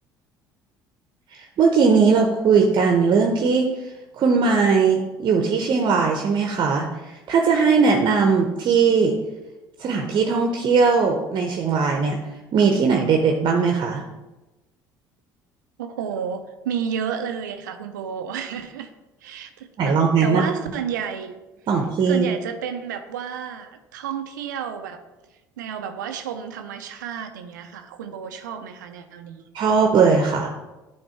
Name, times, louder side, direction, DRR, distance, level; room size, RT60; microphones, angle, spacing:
voice 1, 1.3-3.7 4.1-9.1 9.8-12.2 12.5-14.0 19.8-20.4 21.7-22.3 29.5-30.5, right 5 dB, 50° right, 2 dB, 0.8 m, -19 dB
voice 2, 15.8-18.9 19.2-21.4 22.0-25.0 25.6-29.4, right 7 dB, 80° right, 7 dB, 0.5 m, -31 dB
8.9 x 3.2 x 4.5 m, 1.1 s
hypercardioid pair, 60°, 10 cm